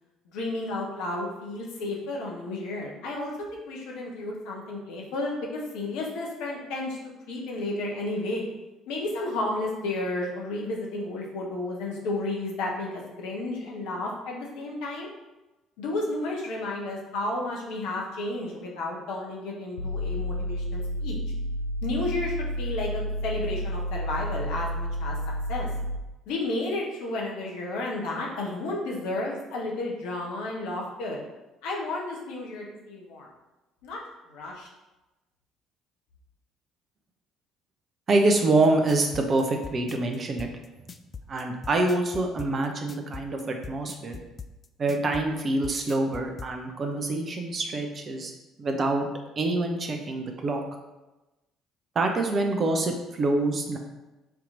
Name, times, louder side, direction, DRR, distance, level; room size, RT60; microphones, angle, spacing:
voice 1, 0.3-7.0 7.3-8.5 8.9-15.1 15.8-21.2 21.8-25.1 25.5-25.7 26.3-31.2 31.6-33.3 33.8-34.0 34.3-34.7, left 2 dB, 60° left, -2 dB, 1.0 m, -32 dB
sound 1, 19.8-26.0, equal, 80° left, 0.5 m, -31 dB
voice 2, 38.1-40.5 41.3-44.2 44.8-48.3 48.6-49.1 49.4-50.6 51.9-53.8, right 2 dB, 40° right, 3 dB, 0.7 m, -26 dB
sound 2, 38.6-46.5, left 5 dB, 30° left, 0.3 m, -41 dB
4.6 x 2.9 x 3.8 m, 1.1 s
figure-of-eight pair, 50°, 0 cm